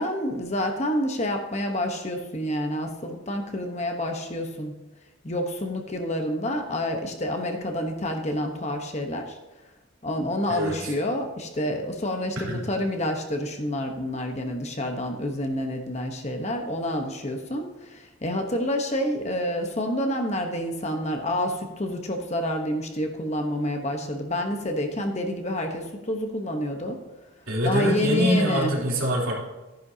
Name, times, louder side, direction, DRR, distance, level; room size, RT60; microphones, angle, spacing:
voice 1, 0.0-4.7 5.2-9.4 10.0-27.0 27.6-28.7, left 1 dB, 30° left, 4 dB, 1.1 m, -28 dB
voice 2, 10.5-10.9 12.4-12.6 27.5-29.3, equal, 80° right, -4 dB, 3.3 m, -24 dB
14.0 x 10.5 x 2.8 m, 1.1 s
head